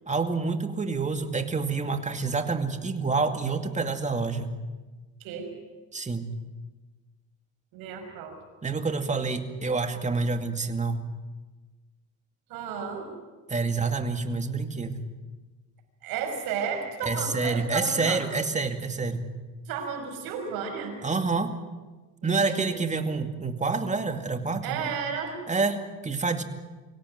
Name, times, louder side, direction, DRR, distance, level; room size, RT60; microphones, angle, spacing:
voice 1, 0.1-4.5 5.9-6.3 8.6-11.1 13.5-15.0 17.0-19.2 21.0-21.5 22.2-24.8 25.5-26.4, right 4 dB, 20° right, 7 dB, 2.3 m, -28 dB
voice 2, 7.7-8.4 12.5-13.1 16.0-18.3 19.7-20.9 22.2-22.8 24.6-25.4, right 6 dB, 85° right, 5 dB, 5.7 m, -33 dB
24.5 x 17.0 x 9.4 m, 1.3 s
cardioid pair, 105°, 35 cm